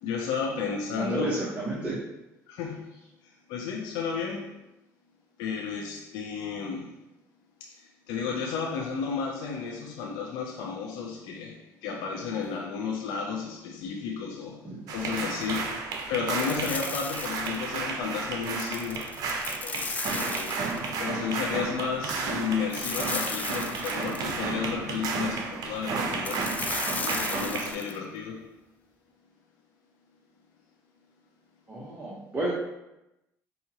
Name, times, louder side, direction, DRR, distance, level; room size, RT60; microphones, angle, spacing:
voice 1, 0.0-1.5 2.5-2.9 3.2-4.5 5.4-6.9 7.6-15.8 16.1-19.1 19.6-20.6 21.0-26.5 26.9-28.5, left 6 dB, 80° left, 0 dB, 0.5 m, -33 dB
voice 2, 1.0-2.0 31.7-32.5, right 2 dB, 20° right, -6 dB, 1.0 m, -31 dB
sound 1, 14.9-27.7, right 4 dB, 60° right, 0.7 m, -32 dB
sound 2, 16.4-17.7 18.4-21.0 22.7-24.4 26.2-28.0, left 4 dB, 20° left, 0.3 m, -35 dB
5.5 x 2.7 x 2.8 m, 0.94 s
cardioid pair, 105°, 7 cm